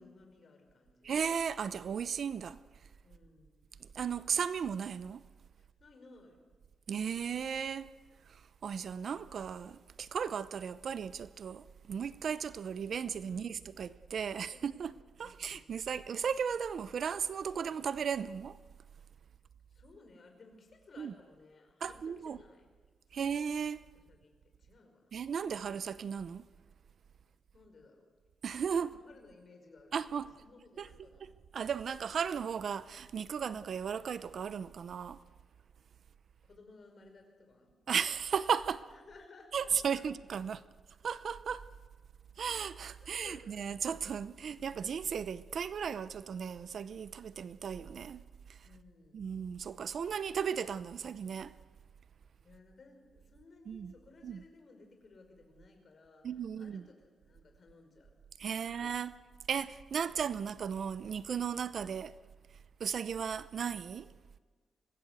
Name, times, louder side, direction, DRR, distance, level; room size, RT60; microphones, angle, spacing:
voice 1, 0.0-1.2 3.0-3.8 5.6-6.4 13.3-13.7 14.3-15.7 19.7-22.7 23.1-23.2 24.1-25.2 27.2-28.1 28.8-31.3 36.4-37.8 38.9-40.1 43.0-43.5 48.6-49.5 52.4-58.2 58.5-58.8, left 3 dB, 40° left, 5.3 m, -59 dB
voice 2, 1.0-2.6 3.8-5.2 6.9-7.9 8.3-14.9 15.2-18.6 21.0-21.1 21.8-22.4 23.1-23.8 25.1-26.4 28.4-28.9 29.9-30.3 30.8-30.9 31.5-35.2 37.9-38.8 39.5-40.6 41.0-41.6 42.4-48.2 49.1-51.5 53.7-53.9 54.2-54.4 56.2-56.8 58.4-59.1 59.5-62.1 62.8-64.1, right 7 dB, 55° right, 0.7 m, -35 dB
24.5 x 19.0 x 8.1 m
cardioid pair, 135°, 0 cm